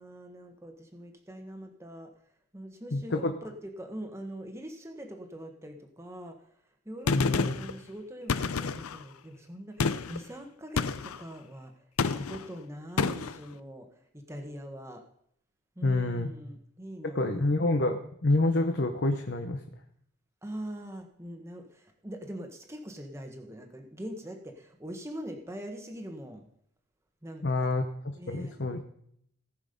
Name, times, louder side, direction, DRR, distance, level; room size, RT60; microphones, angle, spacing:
voice 1, 0.0-2.1 2.5-6.4 6.8-13.9 14.1-15.0 15.7-17.6 20.4-26.5 27.2-27.7 28.1-28.8, equal, 10° right, 4 dB, 1.3 m, -43 dB
voice 2, 2.9-3.3 7.1-7.5 15.8-16.3 17.1-19.6 27.4-27.9 28.3-28.8, left 2 dB, 50° left, 5 dB, 0.9 m, -27 dB
Gunshot gunfire, 7.1-7.7 8.3-9.0 9.8-10.2 10.8-11.2 12.0-12.5 13.0-13.4, left 5 dB, 80° left, 0.6 m, -29 dB
18.0 x 6.3 x 5.3 m, 0.70 s
head